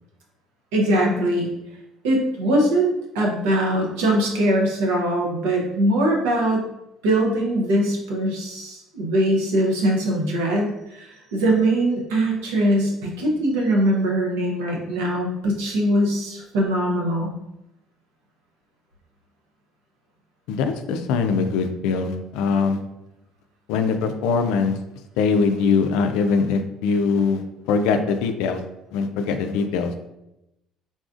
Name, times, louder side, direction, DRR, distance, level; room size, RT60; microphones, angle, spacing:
voice 1, 0.7-1.5 2.0-6.6 7.0-17.3, right 1 dB, 85° right, -1 dB, 0.8 m, -22 dB
voice 2, 20.5-22.8 23.7-24.8 25.2-28.6 28.9-29.9, left 5 dB, 80° left, 7 dB, 0.3 m, -22 dB
3.9 x 2.4 x 2.5 m, 0.87 s
supercardioid pair, 75°, 0 cm